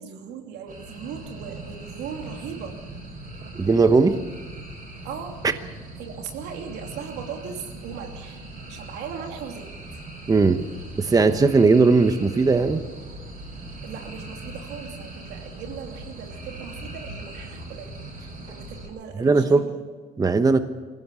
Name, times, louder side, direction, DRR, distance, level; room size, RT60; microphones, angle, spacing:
voice 1, 0.0-2.8 5.0-5.4 6.0-10.0 13.8-18.0 18.4-19.8, right 7 dB, 85° right, 3 dB, 3.0 m, -38 dB
sound 1, 0.7-18.9, right 2 dB, 55° right, 6.8 m, -40 dB
voice 2, 3.5-4.2 10.3-10.6 11.0-12.8 19.2-19.6 20.2-20.6, right 4 dB, 20° right, 9 dB, 1.0 m, -18 dB
21.0 x 16.5 x 8.3 m, 1.5 s
cardioid pair, 110°, 17 cm